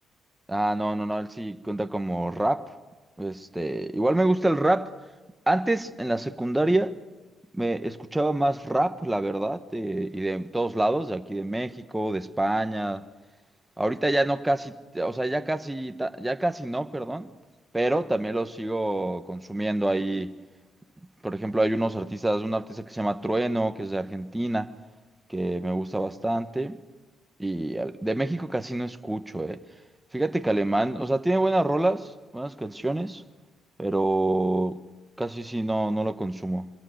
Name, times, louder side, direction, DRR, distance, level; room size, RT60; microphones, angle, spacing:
voice 1, 0.5-2.7 3.2-4.9 5.5-7.0 7.5-13.1 13.8-17.3 17.7-20.4 21.2-24.7 25.3-26.8 27.4-29.6 30.1-33.2 33.8-34.8 35.2-36.7, right 1 dB, 10° right, 1.4 m, -27 dB
27.5 x 22.5 x 6.5 m
cardioid pair, 90°, 0 cm